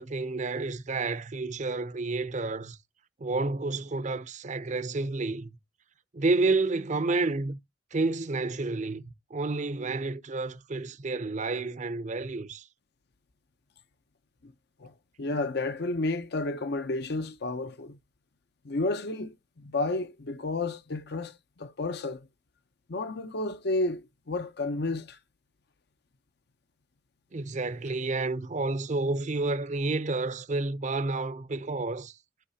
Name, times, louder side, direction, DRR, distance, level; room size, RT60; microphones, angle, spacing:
voice 1, 0.0-2.8 3.2-5.6 6.1-7.6 7.9-9.0 9.3-12.6 27.3-32.2, right 3 dB, 40° right, 0.7 m, -30 dB
voice 2, 15.2-18.0 18.6-22.3 22.9-25.2, left 2 dB, 60° left, 0.7 m, -31 dB
13.0 x 4.7 x 2.7 m
head